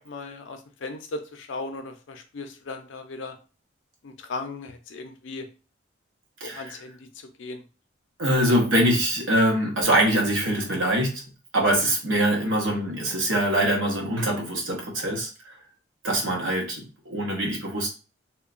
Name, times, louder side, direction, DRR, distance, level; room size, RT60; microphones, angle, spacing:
voice 1, 0.0-3.4 4.0-5.5 6.4-7.7, left 3 dB, 70° left, 0.5 m, -37 dB
voice 2, 8.2-11.2 11.5-15.5 16.0-17.9, right 1 dB, 75° right, 0.8 m, -23 dB
2.9 x 2.2 x 2.4 m
head